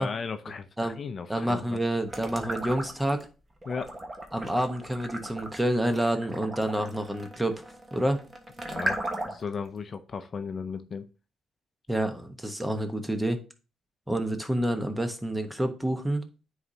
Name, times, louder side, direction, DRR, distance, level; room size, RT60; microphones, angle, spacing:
voice 1, 0.0-1.8 3.7-3.9 8.6-9.0 9.3-11.1, left 5 dB, 45° left, 0.5 m, -36 dB
voice 2, 1.3-3.3 4.3-7.6 7.9-8.2 11.9-13.4 14.1-16.2, right 1 dB, 10° right, 1.0 m, -28 dB
sound 1, 2.1-3.2 3.6-9.5, right 1 dB, 25° right, 1.3 m, -36 dB
9.3 x 4.0 x 2.8 m
cardioid pair, 90°, 0 cm